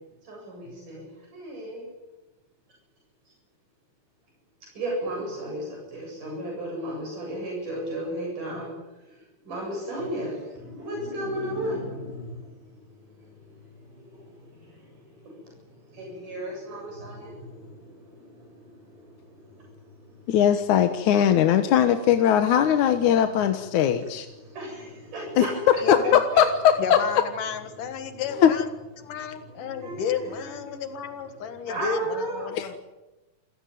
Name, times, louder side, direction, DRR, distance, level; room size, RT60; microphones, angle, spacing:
voice 1, 0.2-1.0 1.3-1.9 4.7-8.7 9.0-20.3 24.4-25.5 28.0-28.2 29.0-30.9 31.6-32.5, right 1 dB, 90° right, -1 dB, 9.4 m, -36 dB
voice 2, 20.3-24.3 25.4-25.5 25.9-26.5 26.9-27.0 28.3-28.5 32.5-32.7, left 9 dB, 75° left, 8 dB, 2.6 m, -20 dB
voice 3, 25.8-26.2 26.8-28.7 29.0-32.8, left 6 dB, 90° left, 8 dB, 3.3 m, -32 dB
29.5 x 16.5 x 9.4 m, 1.1 s
omnidirectional pair, 3.6 m